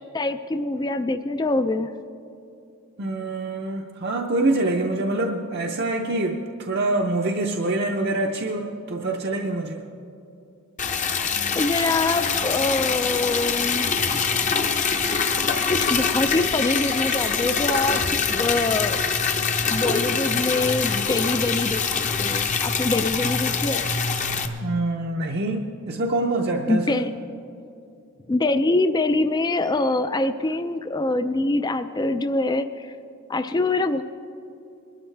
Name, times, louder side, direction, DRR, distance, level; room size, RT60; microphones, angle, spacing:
voice 1, 0.1-1.9 11.5-13.9 14.5-14.6 15.7-18.0 18.3-19.0 19.6-23.9 26.7-27.1 28.3-32.9 33.3-34.0, left 2 dB, 20° left, 9 dB, 0.3 m, -24 dB
voice 2, 3.0-9.9 24.6-27.0, right 2 dB, 45° right, 1 dB, 0.6 m, -25 dB
Liquid, 10.8-24.5, left 5 dB, 35° left, 0.7 m, -24 dB
22.0 x 12.5 x 3.3 m, 2.6 s
head